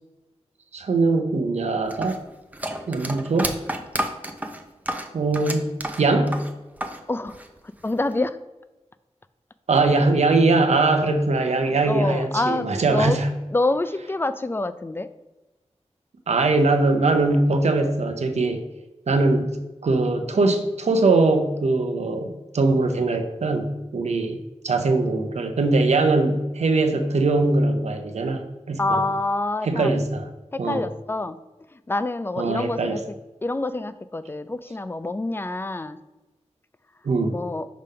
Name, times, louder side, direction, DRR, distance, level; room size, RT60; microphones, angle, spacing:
voice 1, 0.7-2.2 2.9-3.5 5.1-6.4 9.7-13.3 16.3-18.6 19.1-19.6 19.8-24.4 24.6-29.0 29.6-30.3 30.6-30.8 32.4-33.0 37.0-37.4, right 3 dB, 70° right, 6 dB, 0.7 m, -21 dB
sound 1, 1.9-7.0 7.3-8.1, right 1 dB, 15° right, 0.6 m, -31 dB
voice 2, 7.8-8.4 11.6-13.2 13.5-15.1 28.8-29.9 30.5-31.4 31.7-33.0 33.4-36.0 37.3-37.7, left 2 dB, 20° left, 13 dB, 0.3 m, -26 dB
5.1 x 3.6 x 5.5 m, 1.1 s
wide cardioid pair, 80°, 12 cm